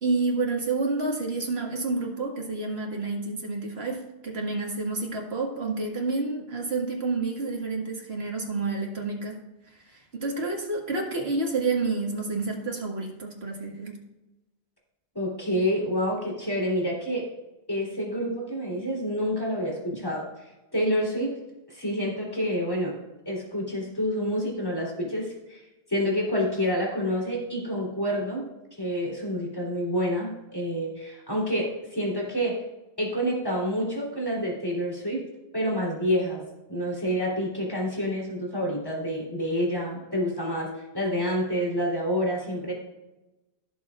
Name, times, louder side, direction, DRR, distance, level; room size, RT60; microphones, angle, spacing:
voice 1, 0.0-9.4 9.9-14.0, right 3 dB, 70° right, -1 dB, 2.1 m, -29 dB
voice 2, 15.1-17.2 17.7-20.2 20.7-21.3 21.7-22.9 23.2-25.6 25.9-28.4 28.8-32.5 33.0-35.2 35.5-36.4 36.7-40.7 40.9-42.7, equal, 20° left, -3 dB, 3.4 m, -28 dB
16.5 x 7.1 x 2.5 m, 1.0 s
omnidirectional pair, 1.1 m